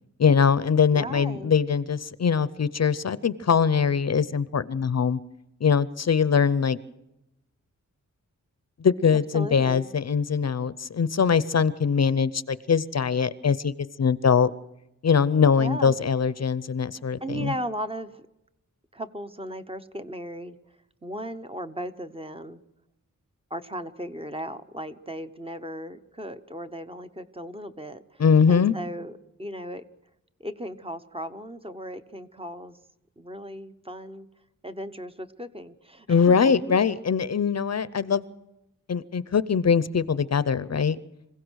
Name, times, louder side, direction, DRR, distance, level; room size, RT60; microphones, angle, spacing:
voice 1, 0.2-5.2 5.6-6.8 8.8-14.5 15.0-17.5 28.2-28.7 36.1-38.2 38.9-41.0, left 6 dB, 50° left, 16 dB, 0.7 m, -22 dB
voice 2, 0.9-1.5 9.3-9.9 15.6-16.0 17.2-18.3 18.9-20.6 21.0-22.6 23.5-29.8 30.4-32.8 33.2-34.3 34.6-36.4 36.7-37.0, right 1 dB, 15° right, 9 dB, 1.0 m, -36 dB
26.0 x 16.5 x 6.4 m, 0.90 s
wide cardioid pair, 140°, 32 cm